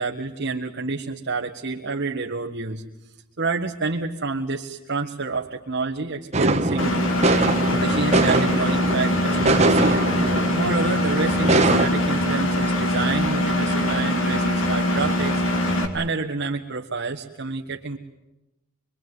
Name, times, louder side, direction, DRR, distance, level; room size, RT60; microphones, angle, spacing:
voice 1, 0.0-7.0 7.8-18.0, right 3 dB, 55° right, 1 dB, 1.5 m, -29 dB
sound 1, 6.3-11.9, right 2 dB, 30° right, 1.4 m, -22 dB
Engine, 6.8-15.9, left 1 dB, 60° left, 2.9 m, -22 dB
24.5 x 24.0 x 9.6 m, 0.97 s
head